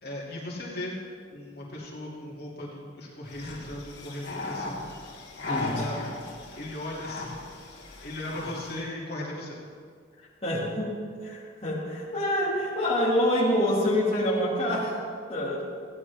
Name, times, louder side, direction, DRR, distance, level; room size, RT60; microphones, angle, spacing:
voice 1, 0.0-1.0 1.3-4.9 5.4-6.0 6.6-7.4 8.0-9.6, left 1 dB, 55° left, -5 dB, 2.5 m, -37 dB
sound 1, 3.3-8.8, left 2 dB, 75° left, 2.7 m, -37 dB
voice 2, 5.4-5.9 10.4-10.9 11.2-15.0 15.3-15.6, left 1 dB, 30° left, -8 dB, 2.1 m, -26 dB
16.0 x 9.8 x 3.5 m, 2.1 s
head